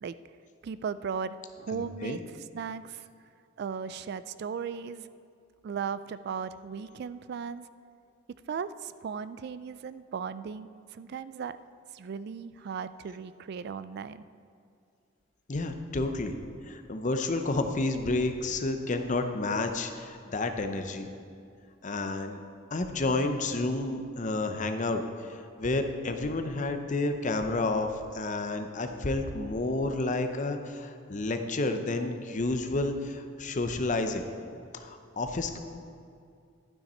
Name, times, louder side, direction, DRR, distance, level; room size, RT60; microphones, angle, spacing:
voice 1, 0.6-2.2 2.5-3.0 3.6-5.1 5.6-7.7 8.5-11.6 11.9-14.2, right 6 dB, 55° right, 14 dB, 0.3 m, -36 dB
voice 2, 1.7-2.2 15.5-16.4 16.7-21.1 21.8-22.4 22.7-34.3 34.7-35.6, left 2 dB, 40° left, 7 dB, 0.7 m, -30 dB
12.5 x 9.0 x 4.3 m, 2.3 s
head